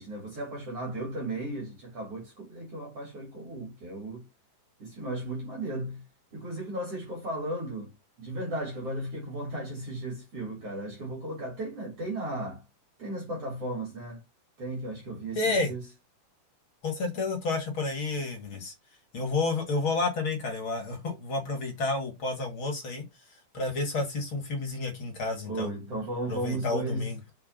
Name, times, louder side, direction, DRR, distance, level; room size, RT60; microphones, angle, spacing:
voice 1, 0.0-4.3 4.8-6.0 6.3-7.9 8.2-12.6 13.0-14.2 14.6-15.9 25.4-27.2, right 1 dB, 45° right, 4.1 m, -35 dB
voice 2, 15.3-15.7 16.8-18.7 19.1-25.7 26.3-27.2, left 3 dB, 40° left, 2.8 m, -30 dB
6.9 x 5.2 x 4.0 m
omnidirectional pair, 3.8 m